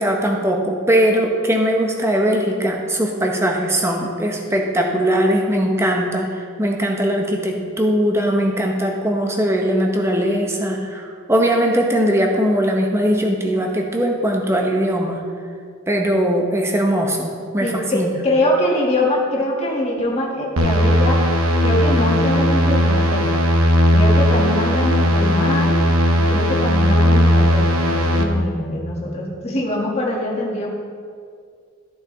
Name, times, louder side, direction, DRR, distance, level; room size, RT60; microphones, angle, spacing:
voice 1, 0.0-15.2 15.9-18.1, equal, 10° right, 1 dB, 0.8 m, -20 dB
voice 2, 17.6-21.2 21.6-23.4 23.9-25.8 26.2-30.7, left 1 dB, 30° left, -3 dB, 1.5 m, -23 dB
sound 1, 20.6-28.2, equal, 80° right, 0.9 m, -17 dB
13.0 x 6.0 x 3.9 m, 2.1 s
head